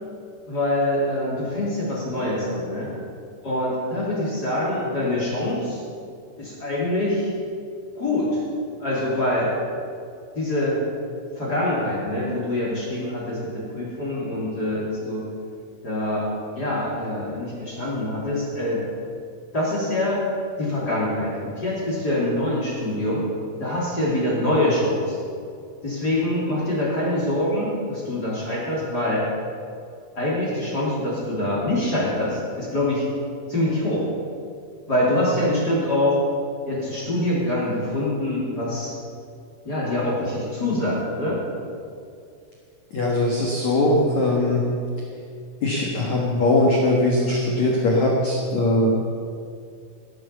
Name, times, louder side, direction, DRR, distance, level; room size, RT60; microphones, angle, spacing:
voice 1, 0.5-2.9 3.4-5.8 6.4-7.3 8.0-8.4 8.8-9.5 10.3-10.8 11.4-15.3 15.8-16.3 16.5-18.8 19.5-20.2 20.6-23.2 23.6-25.2 25.8-29.3 30.1-33.1 33.5-34.1 34.9-36.2 36.6-38.9 39.6-41.4, left 1 dB, 25° left, -6 dB, 2.8 m, -24 dB
voice 2, 42.9-44.6 45.6-49.1, left 1 dB, 75° left, -2 dB, 1.6 m, -20 dB
15.5 x 9.3 x 6.9 m, 2.4 s
omnidirectional pair, 5.9 m